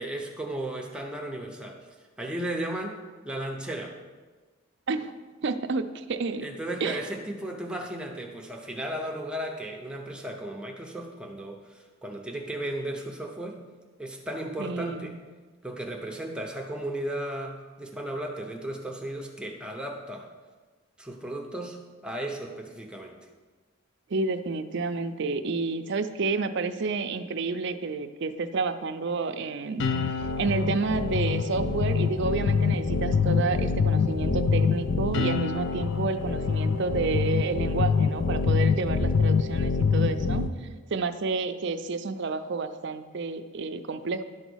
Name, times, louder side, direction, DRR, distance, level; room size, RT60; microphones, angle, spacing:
voice 1, 0.0-1.8 2.2-4.0 6.4-13.6 14.0-15.1 15.6-20.3 21.0-23.3, right 1 dB, 5° right, 1 dB, 0.7 m, -35 dB
voice 2, 5.4-6.5 6.8-7.0 14.6-15.1 24.1-29.8 30.4-44.2, right 4 dB, 55° right, 9 dB, 0.5 m, -30 dB
sound 1, 29.8-40.5, left 5 dB, 55° left, 0.5 m, -25 dB
11.5 x 4.0 x 6.2 m, 1.4 s
head